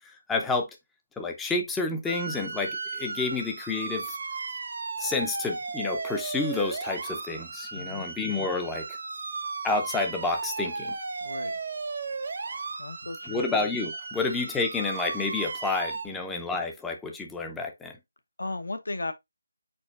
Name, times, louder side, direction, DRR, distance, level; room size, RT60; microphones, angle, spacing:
voice 1, 0.3-0.7 1.2-4.2 5.0-8.9 9.6-11.0 13.3-18.0, left 3 dB, 5° left, 0.4 m, -29 dB
sound 1, 2.1-16.1, right 4 dB, 50° right, 0.6 m, -35 dB
voice 2, 7.7-8.1 11.2-11.6 12.8-13.4 18.4-19.1, left 2 dB, 80° left, 0.8 m, -35 dB
4.5 x 4.2 x 2.4 m
figure-of-eight pair, 170°, 0 cm